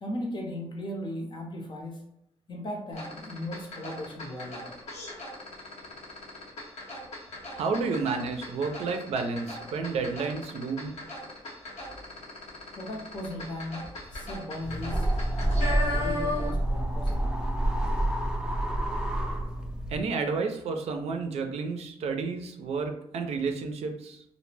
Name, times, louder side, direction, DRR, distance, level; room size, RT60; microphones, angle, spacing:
voice 1, 0.0-2.0 2.5-4.7 12.8-15.1 15.4-17.4, left 1 dB, 45° left, 1 dB, 0.7 m, -37 dB
sound 1, 2.9-16.7 17.0-17.1, left 2 dB, 80° left, 0.8 m, -38 dB
voice 2, 7.5-11.0 19.9-24.2, right 4 dB, 75° right, 5 dB, 0.4 m, -31 dB
sound 2, 14.6-20.0, right 1 dB, 5° right, 0.4 m, -28 dB
2.1 x 2.0 x 3.2 m, 0.78 s
cardioid pair, 85°, 11 cm